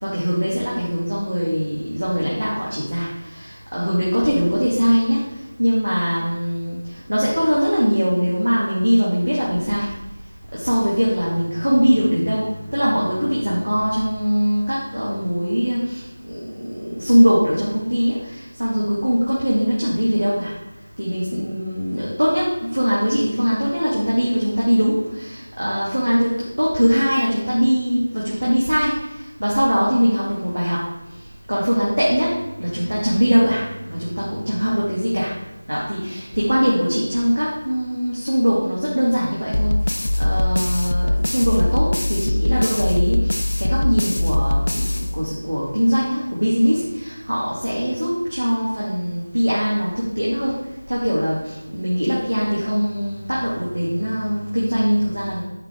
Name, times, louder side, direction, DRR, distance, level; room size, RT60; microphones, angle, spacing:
voice 1, 0.0-5.3 5.6-6.8 7.1-9.9 10.5-12.4 12.7-16.0 16.3-20.5 21.0-28.9 29.4-30.8 31.5-35.3 35.7-39.7 40.2-50.5 50.9-55.4, equal, 80° right, -7 dB, 2.1 m, -21 dB
sound 1, 39.5-45.6, left 1 dB, 65° left, 0.4 m, -21 dB
9.0 x 5.2 x 3.6 m, 0.96 s
figure-of-eight pair, 170°, 0 cm